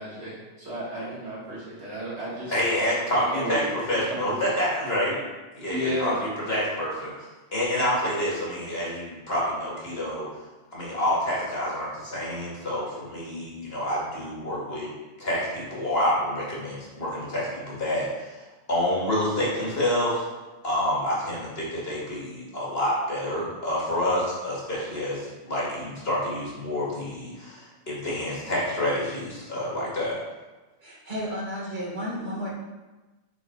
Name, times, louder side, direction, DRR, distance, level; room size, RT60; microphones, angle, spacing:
voice 1, 0.0-2.6 3.2-4.4 5.7-6.2, equal, 90° right, -6 dB, 2.4 m, -33 dB
voice 2, 2.5-5.2 5.5-7.1 7.5-10.3 10.7-14.9 15.2-18.4 18.7-20.2 20.6-30.2, left 1 dB, 65° left, -6 dB, 2.5 m, -28 dB
voice 3, 30.8-32.5, equal, 50° right, -5 dB, 1.8 m, -32 dB
7.0 x 4.3 x 4.6 m, 1.2 s
omnidirectional pair, 1.1 m